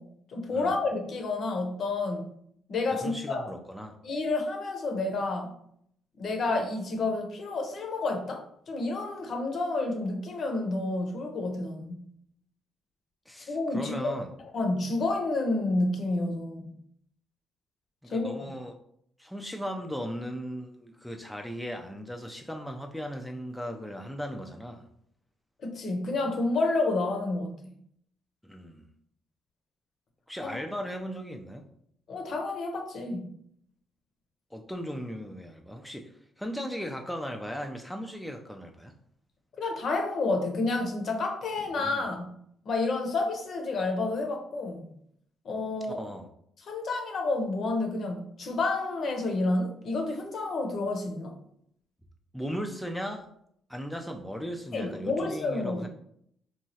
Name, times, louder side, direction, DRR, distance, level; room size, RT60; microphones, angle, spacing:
voice 1, 0.0-2.2 2.7-3.4 4.0-5.5 6.2-12.0 13.5-14.1 14.5-16.7 18.1-18.3 25.6-27.5 30.4-30.6 32.1-33.3 39.6-42.3 42.7-44.9 45.4-46.0 46.6-51.4 54.7-55.9, left 2 dB, 60° left, 3 dB, 0.7 m, -30 dB
voice 2, 2.9-4.0 13.3-14.3 18.0-18.7 19.2-24.9 28.4-28.9 30.3-31.7 34.5-38.9 41.8-42.0 45.8-46.3 52.3-53.3 53.7-55.9, equal, 5° left, 3 dB, 0.3 m, -37 dB
3.0 x 2.3 x 2.7 m, 0.68 s
cardioid pair, 90°, 0 cm